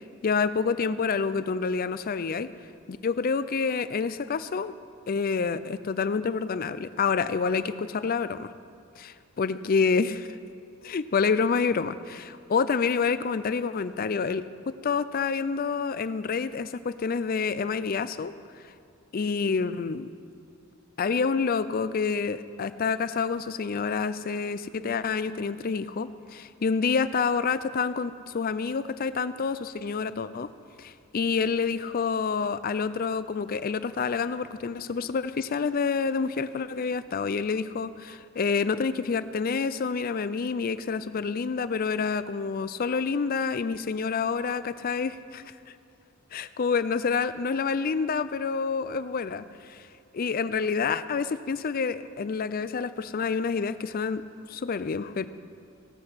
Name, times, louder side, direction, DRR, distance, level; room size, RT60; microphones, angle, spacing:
voice 1, 0.2-2.5 2.9-4.7 5.1-8.5 9.0-10.4 10.8-18.3 19.1-20.1 21.0-30.5 30.8-45.4 46.3-49.8 50.1-54.2 54.5-55.3, left 5 dB, 40° left, 14 dB, 0.4 m, -28 dB
17.0 x 7.9 x 5.7 m, 2.4 s
head